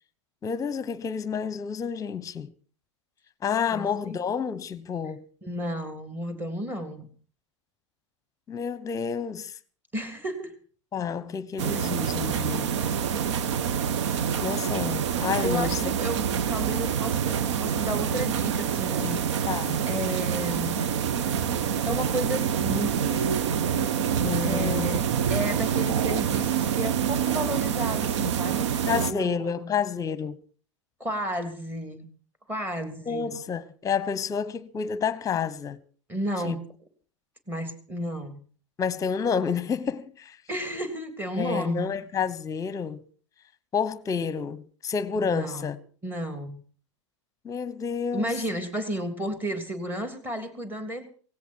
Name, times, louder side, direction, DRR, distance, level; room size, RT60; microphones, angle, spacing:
voice 1, 0.4-2.5 3.4-5.2 8.5-9.6 10.9-12.7 14.4-15.8 19.5-19.8 24.2-24.9 28.8-30.4 33.1-35.8 36.4-36.6 38.8-40.4 41.4-43.0 43.7-45.8 47.4-48.4, left 6 dB, 20° left, 1.1 m, -29 dB
voice 2, 3.7-4.2 5.4-7.1 9.9-10.5 11.7-11.8 15.4-19.6 19.9-20.8 21.9-23.3 24.4-29.5 31.0-32.1 32.5-33.4 36.1-36.6 37.5-38.4 40.5-42.0 45.2-45.7 46.0-46.6 48.1-51.1, equal, 10° right, 3.2 m, -33 dB
sound 1, 11.6-29.1, right 8 dB, 65° right, 1.1 m, -26 dB
17.0 x 16.5 x 4.6 m
hypercardioid pair, 100°, 16 cm